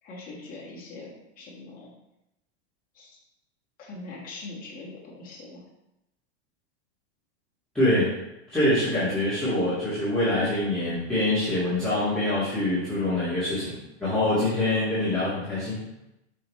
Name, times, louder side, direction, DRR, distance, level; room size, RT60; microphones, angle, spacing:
voice 1, 0.0-1.9 2.9-3.2 3.8-5.6, left 3 dB, 25° left, -4 dB, 1.6 m, -42 dB
voice 2, 7.7-8.1 8.5-13.7 14.0-15.8, left 1 dB, ahead, -15 dB, 1.9 m, -25 dB
5.5 x 5.4 x 3.2 m, 0.91 s
supercardioid pair, 165°, 34 cm